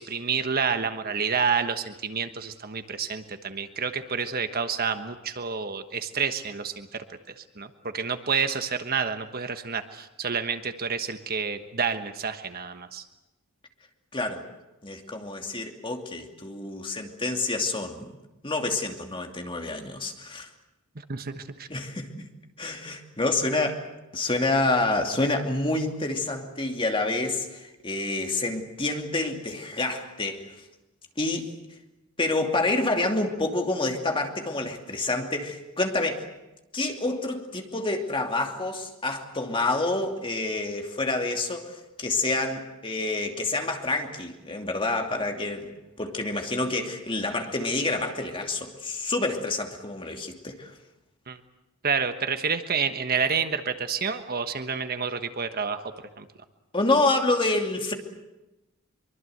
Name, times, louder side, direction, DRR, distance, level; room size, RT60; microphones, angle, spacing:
voice 1, 0.0-13.0 21.1-21.7 51.3-51.4 51.8-56.3, right 6 dB, 45° right, 9 dB, 1.3 m, -29 dB
voice 2, 14.1-14.4 14.8-18.1 18.4-20.5 21.7-22.3 22.6-23.9 24.1-30.4 31.2-31.5 32.2-36.2 36.7-45.7 46.0-50.7 56.7-57.9, left 2 dB, 25° left, 3 dB, 2.7 m, -28 dB
24.0 x 24.0 x 8.0 m, 0.98 s
head